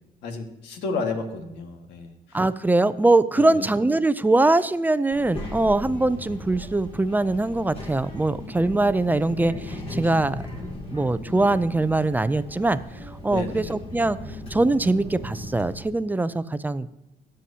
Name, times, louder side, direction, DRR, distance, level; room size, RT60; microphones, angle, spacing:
voice 1, 0.2-2.4 3.4-3.7 13.3-13.7, left 3 dB, 90° left, 5 dB, 1.7 m, -32 dB
voice 2, 2.3-10.4 10.9-12.8 13.2-14.2 14.5-16.9, right 2 dB, 10° right, 14 dB, 0.4 m, -22 dB
Child speech kid speaking, 5.1-15.9, left 1 dB, 35° left, 2.5 m, -37 dB
22.5 x 7.6 x 2.8 m, 0.90 s
cardioid pair, 110°, 17 cm